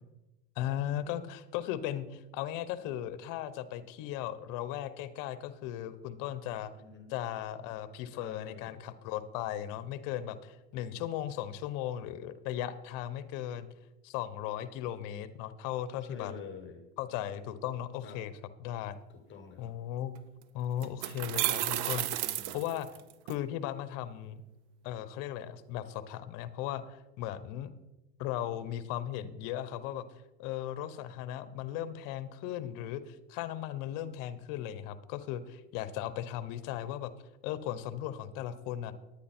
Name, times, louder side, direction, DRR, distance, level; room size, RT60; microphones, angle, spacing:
voice 1, 0.6-6.7 7.1-13.7 14.0-16.3 17.0-18.3 18.6-19.0 19.6-20.1 20.5-22.9 23.3-24.4 24.8-27.7 28.2-30.0 30.4-37.1 37.4-38.9, left 11 dB, 60° left, 14 dB, 1.0 m, -37 dB
voice 2, 6.7-7.1 8.1-8.8 16.1-16.8 18.0-18.2 19.1-19.7 22.2-22.6, left 6 dB, 30° left, 6 dB, 1.5 m, -47 dB
sound 1, 20.2-20.3 20.8-23.3, right 15 dB, 55° right, 0.6 m, -32 dB
10.0 x 9.9 x 4.3 m, 1.0 s
supercardioid pair, 115°, 37 cm